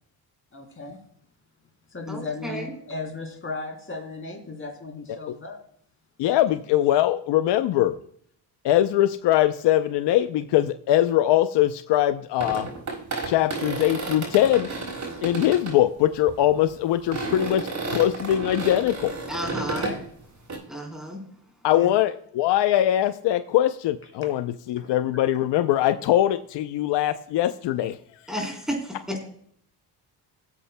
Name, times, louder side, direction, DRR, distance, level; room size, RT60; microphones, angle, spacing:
voice 1, 0.5-1.0 1.9-5.6 19.7-20.0 21.7-21.9, left 3 dB, 30° left, 2 dB, 3.1 m, -35 dB
voice 2, 2.1-2.7 19.3-19.9 20.7-21.2 28.3-29.2, equal, ahead, 1 dB, 3.7 m, -32 dB
voice 3, 6.2-8.0 8.6-12.7 13.3-14.7 15.2-19.1 21.6-28.0, left 13 dB, 80° left, 11 dB, 0.6 m, -22 dB
sound 1, 12.4-15.8 16.3-16.5 17.1-20.0 20.5-20.6, right 3 dB, 45° right, 4.9 m, -32 dB
18.5 x 8.4 x 2.2 m, 0.64 s
cardioid pair, 90°, 41 cm